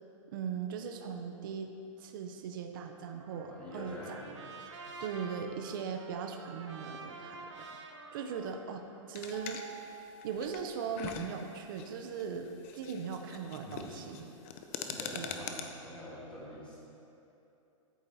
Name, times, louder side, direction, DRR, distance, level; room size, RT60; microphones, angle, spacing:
voice 1, 0.3-1.7 2.0-4.3 5.0-7.7 8.1-9.6 10.2-14.3 15.1-15.3, right 6 dB, 40° right, 5 dB, 0.6 m, -39 dB
Trumpet, 3.2-9.4, right 4 dB, 60° right, 1.2 m, -49 dB
voice 2, 3.4-4.4 4.8-4.9 13.6-14.1 14.8-16.8, left 1 dB, 5° left, -7 dB, 1.6 m, -46 dB
sound 1, 9.2-15.6, left 7 dB, 25° left, 0.4 m, -44 dB
sound 2, 9.3-11.6, right 5 dB, 40° left, 1.2 m, -51 dB
9.8 x 8.7 x 4.1 m, 2.9 s
hypercardioid pair, 175°, 17 cm